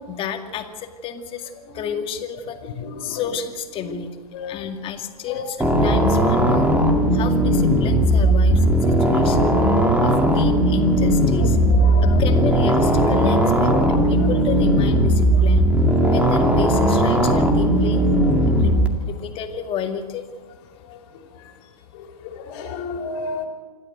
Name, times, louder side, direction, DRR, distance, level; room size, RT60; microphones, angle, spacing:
voice 1, 0.1-2.7 3.0-6.7 7.1-9.6 10.0-11.6 12.0-13.7 14.0-15.6 16.1-18.0 18.5-18.7 19.0-20.3, left 7 dB, 25° left, 6 dB, 2.2 m, -31 dB
voice 2, 2.8-3.2 3.8-3.9 4.3-4.5 5.3-5.4 11.8-12.2 13.7-14.3 16.0-16.1 18.4-18.5 20.9-21.0 21.9-23.5, left 4 dB, 45° left, 4 dB, 3.6 m, -32 dB
sound 1, 5.6-18.9, right 1 dB, 5° right, 2.1 m, -17 dB
27.0 x 12.5 x 8.0 m, 1.4 s
hypercardioid pair, 125°, 20 cm